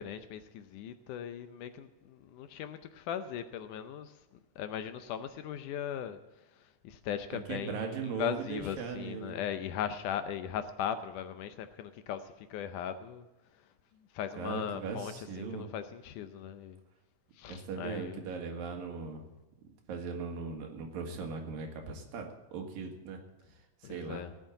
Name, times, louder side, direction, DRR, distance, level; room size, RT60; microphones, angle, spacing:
voice 1, 0.0-4.2 4.6-13.3 13.5-13.7 14.1-16.8 17.4-18.3 23.8-24.3, left 9 dB, 75° left, 10 dB, 2.0 m, -39 dB
voice 2, 7.5-9.4 14.4-15.7 17.5-19.3 19.9-23.2 23.5-24.2, right 5 dB, 80° right, 3 dB, 3.5 m, -39 dB
17.0 x 7.3 x 9.0 m, 1.0 s
omnidirectional pair, 4.0 m